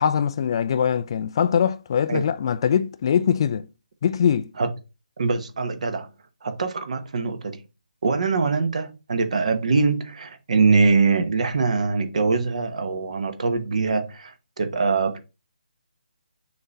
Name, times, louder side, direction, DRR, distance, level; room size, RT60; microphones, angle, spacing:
voice 1, 0.0-3.7 4.0-4.5, left 8 dB, 35° left, 0.4 m, -22 dB
voice 2, 5.2-6.1 6.4-7.6 8.0-15.2, right 4 dB, 50° right, 1.0 m, -23 dB
6.4 x 2.8 x 5.3 m
figure-of-eight pair, 150°, 5 cm